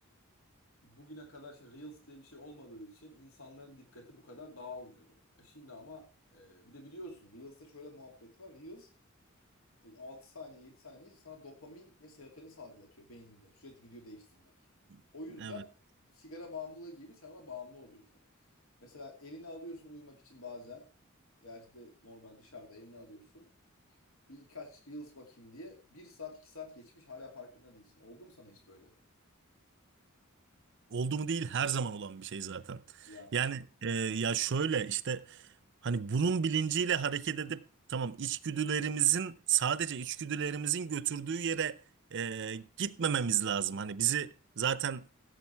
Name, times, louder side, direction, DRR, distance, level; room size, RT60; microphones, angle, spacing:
voice 1, 0.8-8.9 9.8-14.5 15.1-15.7 16.1-18.0 18.8-20.9 21.4-23.5 24.3-28.9 33.1-33.4, left 2 dB, 80° left, 2.6 m, -49 dB
voice 2, 30.9-35.5 35.8-37.6 37.9-41.8 42.1-45.0, right 7 dB, 60° right, 0.6 m, -32 dB
15.5 x 7.9 x 4.5 m
head